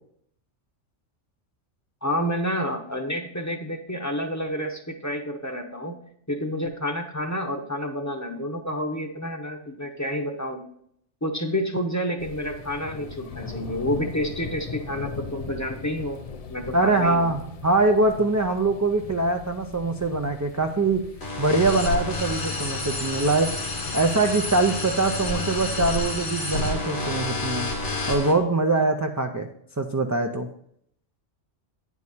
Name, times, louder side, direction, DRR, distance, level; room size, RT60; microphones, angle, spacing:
voice 1, 2.0-6.0 6.3-10.6 11.2-16.2 16.5-17.3, equal, 15° left, 3 dB, 0.8 m, -29 dB
sound 1, 12.2-26.3, left 6 dB, 45° left, 0.5 m, -40 dB
voice 2, 16.7-21.1 21.4-23.5 23.9-27.7 28.1-29.5 29.8-30.5, right 2 dB, 25° right, 3 dB, 0.3 m, -23 dB
sound 2, 21.2-28.3, left 2 dB, 75° left, 2.0 m, -29 dB
9.5 x 4.8 x 5.5 m, 0.68 s
omnidirectional pair, 1.2 m